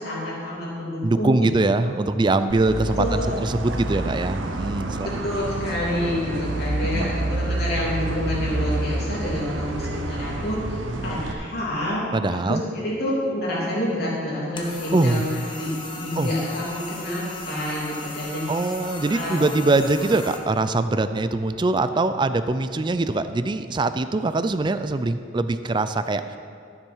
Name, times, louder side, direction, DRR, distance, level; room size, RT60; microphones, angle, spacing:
voice 1, 0.0-1.4 3.0-3.4 4.9-12.1 12.5-18.7 19.1-19.4, left 1 dB, 55° left, -7 dB, 3.3 m, -28 dB
voice 2, 1.0-5.1 6.9-7.2 10.7-11.1 12.1-12.6 14.9-15.2 16.2-16.3 18.5-26.4, right 2 dB, 25° right, 11 dB, 0.4 m, -23 dB
sound 1, 2.5-11.3, right 1 dB, 80° right, 0.9 m, -28 dB
sound 2, 14.6-20.4, left 2 dB, 25° left, 1.0 m, -37 dB
12.5 x 7.4 x 5.5 m, 2.4 s
head